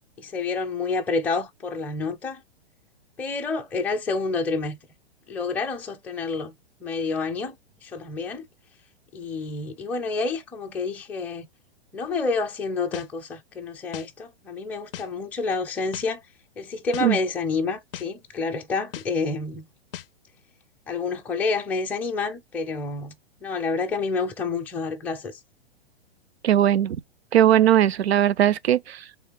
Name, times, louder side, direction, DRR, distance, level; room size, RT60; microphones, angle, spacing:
voice 1, 0.2-2.4 3.2-4.8 5.3-6.5 6.8-7.6 7.8-8.5 9.1-11.5 11.9-16.2 16.6-19.7 20.9-23.1 23.4-25.4, left 4 dB, 5° left, 0.4 m, -28 dB
sound 1, 12.9-13.1 13.9-14.1 14.9-15.1 15.9-16.1 16.9-17.1 17.9-18.1 18.9-19.1 19.9-20.1, left 11 dB, 60° left, 0.4 m, -37 dB
voice 2, 26.4-27.0 27.3-29.2, right 11 dB, 75° right, 0.5 m, -19 dB
3.2 x 3.1 x 4.5 m
hypercardioid pair, 115°, 32 cm